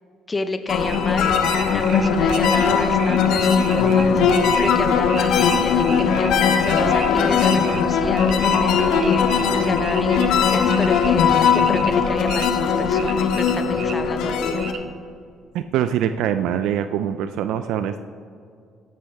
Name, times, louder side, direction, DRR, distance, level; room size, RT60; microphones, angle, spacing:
voice 1, 0.3-14.6, left 3 dB, 20° left, 9 dB, 0.9 m, -30 dB
sound 1, 0.7-14.7, left 6 dB, 75° left, 1.2 m, -19 dB
sound 2, 0.8-7.8 8.1-12.5 12.9-13.9 14.6-14.8, right 7 dB, 60° right, 1.0 m, -35 dB
voice 2, 15.5-18.0, right 10 dB, 80° right, 10 dB, 0.5 m, -23 dB
14.0 x 11.5 x 3.5 m, 2.3 s
cardioid pair, 105°, 0 cm